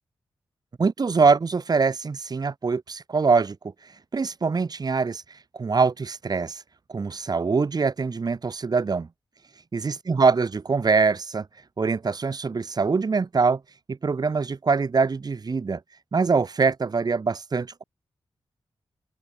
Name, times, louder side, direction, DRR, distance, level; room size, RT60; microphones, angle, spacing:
voice 1, 0.8-3.6 4.1-5.2 5.5-6.6 6.9-9.1 9.7-11.5 11.8-13.6 13.9-15.8 16.1-17.8, right 4 dB, 45° right, 1.9 m, -23 dB
wide cardioid pair, 90°, 9 cm